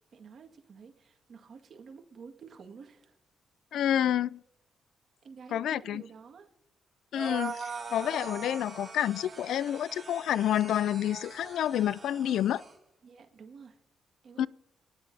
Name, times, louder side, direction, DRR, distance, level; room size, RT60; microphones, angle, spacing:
voice 1, 0.1-3.2 5.2-6.5 13.0-13.8 14.2-14.5, right 5 dB, 55° right, 1.8 m, -50 dB
voice 2, 3.7-4.4 5.5-6.0 7.1-12.6 14.4-14.5, left 11 dB, 80° left, 0.3 m, -29 dB
sound 1, 7.1-12.7, right 4 dB, 25° right, 4.6 m, -42 dB
24.0 x 10.5 x 2.7 m
cardioid pair, 115°, 0 cm